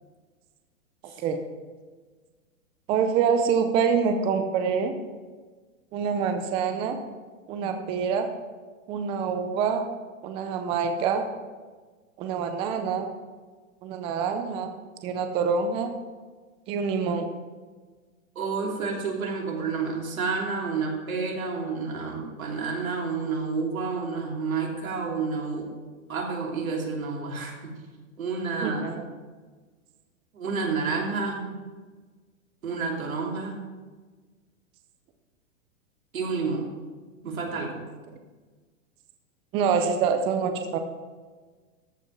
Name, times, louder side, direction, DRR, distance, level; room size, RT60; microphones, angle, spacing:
voice 1, 2.9-4.9 5.9-7.0 7.5-8.3 8.9-9.8 10.2-11.3 12.2-13.1 13.8-14.7 15.0-15.9 16.7-17.3 28.6-29.0 39.5-40.8, right 6 dB, 15° right, 6 dB, 0.4 m, -26 dB
voice 2, 18.3-25.7 26.1-27.7 28.2-28.9 30.3-31.5 32.6-33.6 36.1-36.7 37.2-37.8, right 4 dB, 90° right, -1 dB, 3.0 m, -30 dB
14.0 x 5.3 x 5.9 m, 1.4 s
hypercardioid pair, 140°, 40 cm